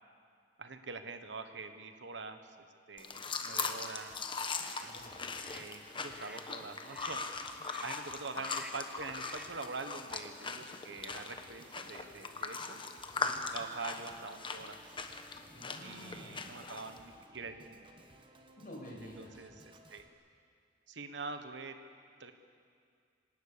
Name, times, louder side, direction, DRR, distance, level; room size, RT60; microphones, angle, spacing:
voice 1, 0.6-2.6 2.9-4.2 4.8-5.1 5.5-7.2 7.8-12.8 13.5-14.8 15.8-17.9 19.2-20.0 20.9-21.8 22.2-22.3, right 4 dB, 75° right, 8 dB, 1.3 m, -45 dB
sound 1, 3.0-17.0, left 4 dB, 30° left, 1.2 m, -40 dB
sound 2, 3.8-4.1 4.6-4.9 5.3-5.7 6.1-6.5 6.9-7.2 7.7-8.1 8.4-8.9 9.2-9.6, right 1 dB, 5° right, 1.3 m, -52 dB
Organ, 4.1-20.1, right 1 dB, 30° right, 1.5 m, -59 dB
voice 2, 4.9-5.4 13.1-13.4 15.5-16.5 18.6-19.5, left 1 dB, 50° left, -2 dB, 6.4 m, -50 dB
25.0 x 18.5 x 6.9 m, 2.2 s
head